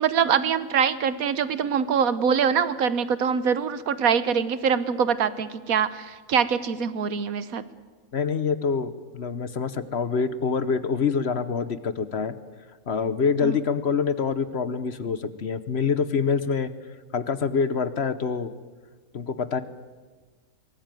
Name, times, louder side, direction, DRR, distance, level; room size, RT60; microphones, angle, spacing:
voice 1, 0.0-7.6 13.4-13.6, right 7 dB, 80° right, 14 dB, 1.5 m, -24 dB
voice 2, 8.1-12.3 12.9-16.7 17.1-18.5 19.1-19.6, left 5 dB, 50° left, 13 dB, 1.1 m, -26 dB
22.5 x 19.0 x 9.1 m, 1.4 s
omnidirectional pair, 1.5 m